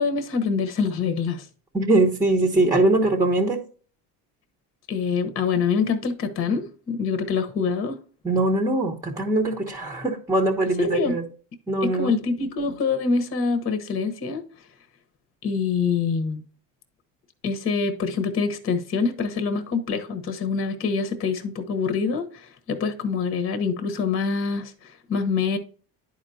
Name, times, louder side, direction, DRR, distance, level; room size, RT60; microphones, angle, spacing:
voice 1, 0.0-1.5 4.9-8.0 10.8-11.2 11.8-14.4 15.4-16.4 17.4-25.6, left 5 dB, 35° left, 1.0 m, -25 dB
voice 2, 1.7-3.6 8.2-11.2 11.7-12.2, right 2 dB, 10° right, 1.0 m, -22 dB
11.0 x 4.5 x 2.7 m
cardioid pair, 110°, 37 cm